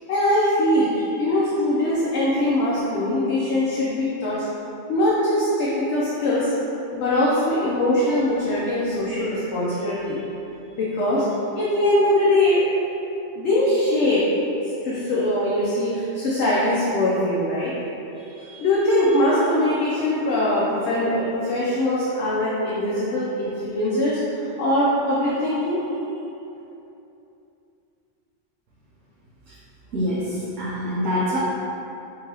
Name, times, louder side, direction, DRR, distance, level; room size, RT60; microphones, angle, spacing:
voice 1, 0.1-4.4 4.9-6.5 6.9-10.2 10.8-11.3 11.5-12.6 13.3-14.2 14.8-17.7 18.3-24.2 24.6-25.8, left 1 dB, 70° left, -8 dB, 0.9 m, -22 dB
voice 2, 29.9-31.4, equal, 80° right, -9 dB, 1.0 m, -25 dB
3.8 x 2.8 x 2.8 m, 2.9 s
omnidirectional pair, 1.2 m